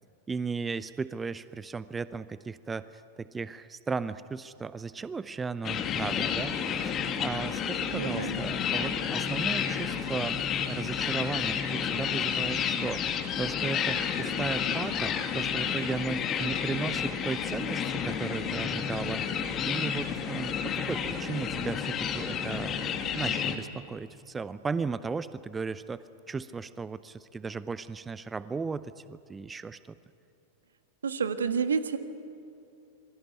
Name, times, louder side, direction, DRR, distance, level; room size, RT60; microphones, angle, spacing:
voice 1, 0.3-6.7 7.2-10.4 10.7-19.3 19.6-22.8 23.1-29.8, right 4 dB, 15° right, 16 dB, 0.6 m, -35 dB
sound 1, 5.6-23.6, left 7 dB, 30° left, 2.1 m, -31 dB
voice 2, 7.9-8.4 31.0-32.0, right 6 dB, 70° right, 10 dB, 1.5 m, -29 dB
27.0 x 22.5 x 9.3 m, 2.9 s
figure-of-eight pair, 90°, 0 cm